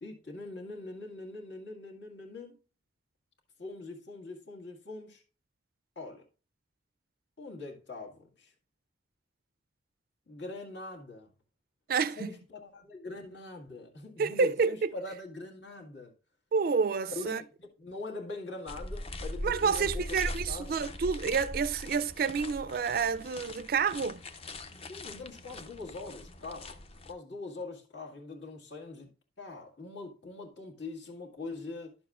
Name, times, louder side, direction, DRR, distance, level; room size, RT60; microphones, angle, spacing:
voice 1, 0.0-2.6 3.6-5.2 6.0-6.2 7.4-8.5 10.3-11.3 12.1-16.1 17.1-20.7 24.7-29.1 29.4-31.9, left 3 dB, 70° left, 1.8 m, -43 dB
voice 2, 11.9-12.3 14.2-14.9 16.5-17.4 19.4-24.2, right 5 dB, 50° right, 0.3 m, -29 dB
sound 1, 18.7-27.1, left 1 dB, 30° left, 0.5 m, -41 dB
11.5 x 7.0 x 2.4 m
head